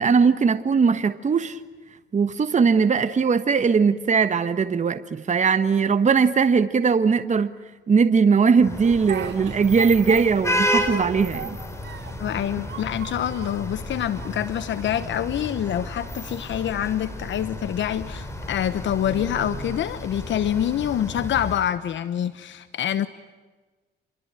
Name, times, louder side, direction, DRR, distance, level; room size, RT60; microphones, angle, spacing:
voice 1, 0.0-1.6 2.1-7.5 7.9-11.6, right 5 dB, 35° right, 1.4 m, -20 dB
street ambiance brooklyn, 8.6-21.6, equal, 15° left, 5.3 m, -32 dB
Speech, 8.8-10.6 10.9-12.3 12.6-13.6 14.2-14.9, right 9 dB, 65° right, 5.4 m, -37 dB
voice 2, 12.2-23.1, left 10 dB, 70° left, 1.1 m, -26 dB
27.5 x 23.0 x 9.1 m
cardioid pair, 90°, 20 cm